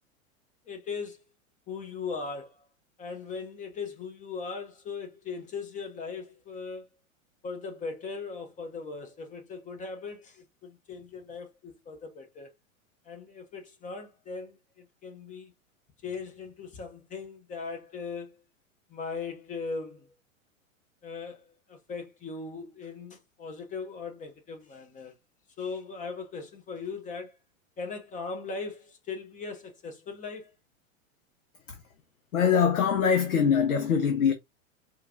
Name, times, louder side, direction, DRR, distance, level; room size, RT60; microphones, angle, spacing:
voice 1, 0.7-1.2 1.7-2.6 3.0-6.9 7.4-12.5 13.1-15.5 16.0-18.4 18.9-20.1 21.0-25.1 25.6-27.4 27.8-30.5, left 4 dB, 20° left, 0.6 m, -39 dB
voice 2, 32.3-34.3, left 7 dB, 85° left, 0.7 m, -23 dB
4.5 x 2.4 x 2.4 m
hypercardioid pair, 105°, 42 cm